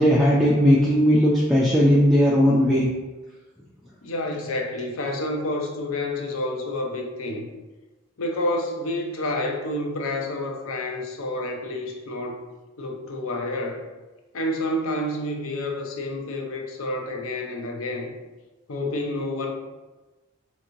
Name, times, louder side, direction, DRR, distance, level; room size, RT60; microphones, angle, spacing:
voice 1, 0.0-2.9, equal, ahead, -7 dB, 0.3 m, -18 dB
voice 2, 4.0-7.5 8.2-12.4 12.8-13.9 14.3-18.1 18.7-19.5, left 1 dB, 70° left, 3 dB, 0.6 m, -29 dB
4.3 x 2.9 x 2.5 m, 1.2 s
head